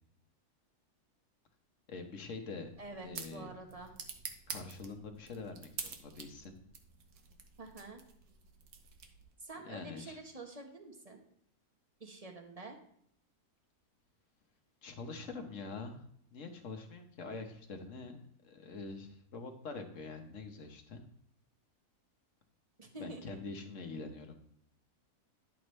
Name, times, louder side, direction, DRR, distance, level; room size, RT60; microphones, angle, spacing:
voice 1, 1.9-2.7 3.0-3.5 4.5-6.6 9.6-10.2 14.8-16.0 16.3-21.0 23.0-24.4, left 4 dB, 55° left, 5 dB, 1.5 m, -45 dB
sound 1, 2.5-9.4, right 6 dB, 85° right, 1.5 m, -48 dB
voice 2, 2.8-3.9 7.6-8.0 9.4-11.2 12.0-12.8 22.8-23.4, right 2 dB, 25° right, 3 dB, 1.2 m, -47 dB
11.0 x 7.1 x 3.2 m, 0.69 s
omnidirectional pair, 1.6 m